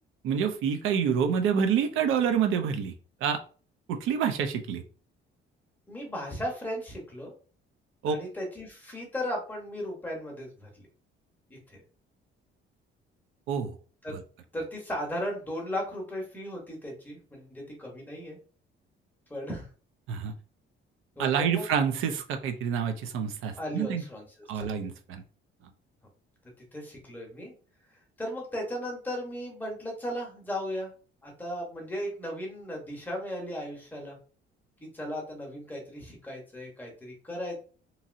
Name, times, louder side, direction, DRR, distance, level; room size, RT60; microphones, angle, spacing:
voice 1, 0.2-2.9 3.2-3.4 3.9-4.8 8.0-8.2 13.5-13.7 20.1-20.3 21.2-24.0 24.5-25.2, right 7 dB, 75° right, 6 dB, 0.5 m, -27 dB
voice 2, 5.9-7.3 8.1-10.8 11.5-11.8 14.0-14.2 14.5-18.4 19.3-19.7 21.2-21.6 23.6-24.2 24.5-24.8 26.7-27.5 28.2-30.9 31.2-34.2 34.8-37.6, equal, 10° left, -1 dB, 0.8 m, -36 dB
2.9 x 2.7 x 2.5 m, 0.39 s
cardioid pair, 170°, 21 cm